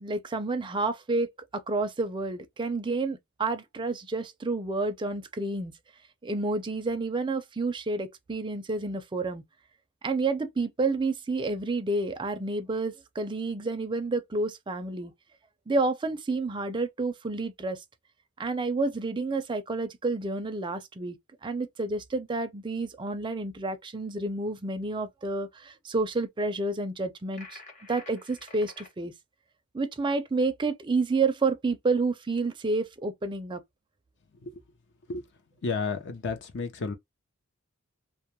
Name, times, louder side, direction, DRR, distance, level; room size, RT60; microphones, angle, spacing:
voice 1, 0.0-5.7 6.2-9.4 10.0-15.1 15.7-17.8 18.4-21.2 21.4-27.6 27.9-29.1 29.7-33.6, right 3 dB, 20° right, 0.4 m, -29 dB
sound 1, 27.3-28.9, left 3 dB, 35° left, 1.1 m, -48 dB
voice 2, 35.6-36.9, left 4 dB, 60° left, 0.6 m, -32 dB
2.2 x 2.1 x 2.9 m
head